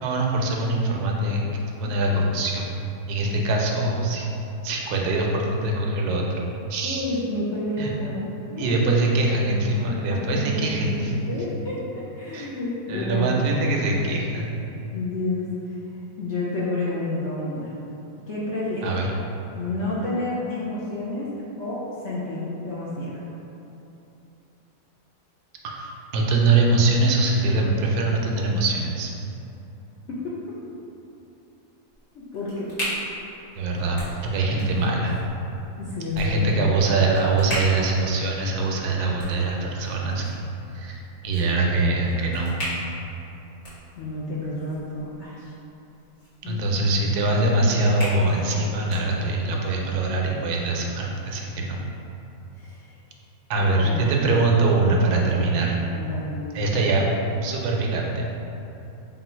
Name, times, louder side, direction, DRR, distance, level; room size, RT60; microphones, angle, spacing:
voice 1, 0.0-2.7 3.1-4.3 4.6-6.3 6.7-7.0 7.8-7.9 8.6-11.1 12.3-12.5 12.9-14.6 18.8-19.1 25.6-29.1 33.6-35.2 36.2-40.4 40.7-42.5 46.4-51.8 53.5-55.8 56.5-57.1 57.4-58.3, right 2 dB, 80° right, -1 dB, 1.1 m, -23 dB
voice 2, 6.8-8.7 9.9-13.4 14.9-15.5 16.2-17.7 18.3-18.8 19.5-21.3 21.6-23.3 30.1-30.4 32.1-32.7 35.8-36.7 43.9-45.5 46.4-46.6 52.6-52.9 53.7-54.2 55.0-55.4 55.9-56.6, left 2 dB, 65° left, -7 dB, 0.7 m, -30 dB
sound 1, 31.9-49.6, equal, 50° left, 1.7 m, -39 dB
3.7 x 2.3 x 4.2 m, 2.9 s
omnidirectional pair, 1.7 m